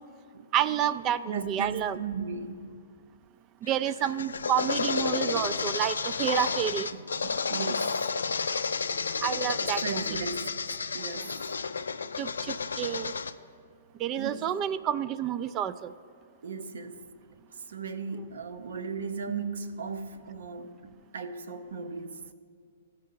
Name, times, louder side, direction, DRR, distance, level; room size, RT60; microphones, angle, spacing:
voice 1, 0.5-2.0 3.7-6.9 9.2-10.2 12.2-13.1 14.0-15.9, right 10 dB, 30° right, 14 dB, 0.3 m, -29 dB
voice 2, 1.3-2.8 6.9-8.0 9.6-10.5 10.9-11.4 14.2-14.4 16.4-17.0 17.7-22.2, right 5 dB, 70° right, 9 dB, 0.7 m, -36 dB
sound 1, 3.7-13.3, left 5 dB, 85° left, 0.3 m, -31 dB
15.5 x 5.3 x 4.0 m, 2.2 s
hypercardioid pair, 125°, 0 cm